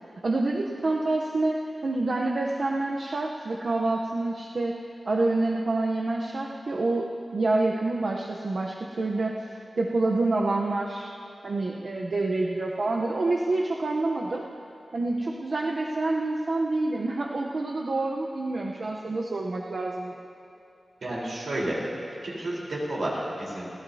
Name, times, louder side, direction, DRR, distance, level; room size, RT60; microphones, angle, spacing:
voice 1, 0.2-4.8 5.0-9.4 9.8-11.1 11.4-14.4 14.9-20.1, right 2 dB, 60° right, -1 dB, 0.8 m, -27 dB
voice 2, 21.0-21.8 22.2-23.7, right 1 dB, 80° right, -5 dB, 4.0 m, -31 dB
29.0 x 12.5 x 2.8 m, 2.8 s
wide cardioid pair, 95°, 0 cm